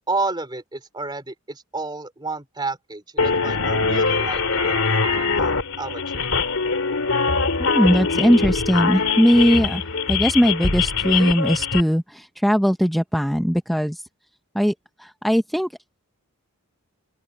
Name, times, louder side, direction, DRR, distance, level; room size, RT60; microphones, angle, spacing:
voice 1, 0.1-4.8 5.2-6.3, right 3 dB, 20° right, 3.5 m, -31 dB
sound 1, 3.2-11.8, left 4 dB, 65° left, 2.9 m, -22 dB
voice 2, 7.6-14.0 14.5-14.7 15.0-15.7, equal, ahead, 0.9 m, -19 dB
open air
head